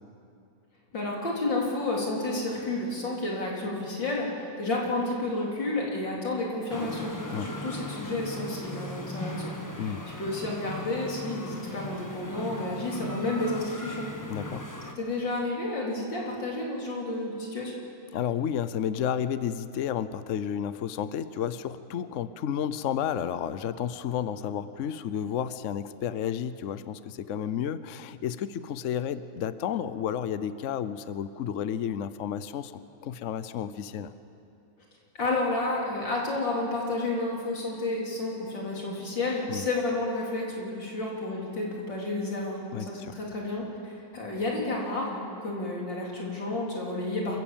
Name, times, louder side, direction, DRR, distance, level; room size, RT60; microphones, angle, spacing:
voice 1, 0.9-7.1 7.4-9.5 10.2-14.1 15.0-17.8 35.1-47.4, left 2 dB, 85° left, -3 dB, 4.2 m, -31 dB
sound 1, 6.7-14.9, left 1 dB, 10° left, 1.1 m, -39 dB
voice 2, 14.3-14.7 18.1-34.1 39.5-39.7 42.7-43.1, left 9 dB, 60° left, 13 dB, 0.8 m, -31 dB
27.0 x 15.5 x 7.4 m, 2.6 s
omnidirectional pair, 2.0 m